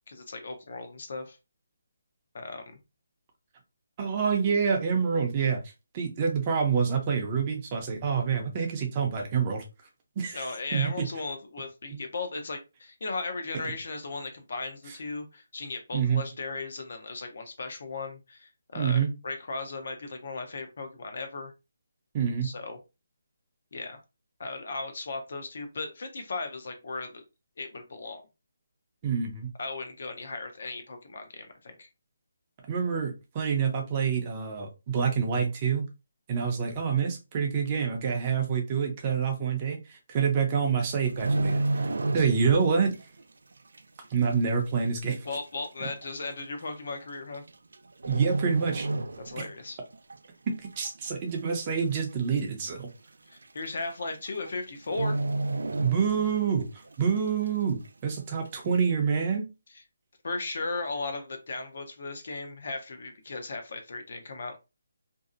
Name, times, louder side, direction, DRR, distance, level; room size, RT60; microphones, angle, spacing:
voice 1, 0.1-1.4 2.3-2.8 10.3-21.5 22.4-22.8 23.7-24.0 24.4-27.2 27.6-28.2 29.6-31.9 45.2-47.4 49.2-49.8 53.3-55.2 60.2-64.5, left 3 dB, 55° left, 7 dB, 0.7 m, -36 dB
voice 2, 4.0-5.6 5.9-9.6 10.2-10.5 10.7-11.1 15.9-16.2 18.7-19.1 22.1-22.5 29.0-29.5 32.7-35.9 36.3-41.9 42.1-43.0 44.1-45.2 45.8-45.9 48.1-48.9 50.5-52.9 55.8-59.5, right 6 dB, 25° right, 2 dB, 0.5 m, -27 dB
sound 1, 40.9-42.7 42.9-43.2 43.8-43.9 44.8-44.9 45.1-45.2 46.0-46.2 47.3-47.7 48.0-49.6 49.9-50.2 50.6-51.2 51.5-51.6 51.8-51.9 52.4-52.5 53.4-53.5 53.8-54.1 54.4-54.5 54.9-56.5 56.9-57.0, right 2 dB, 75° right, 0.3 m, -30 dB
2.6 x 2.0 x 2.5 m, 0.27 s
hypercardioid pair, 170°, 0 cm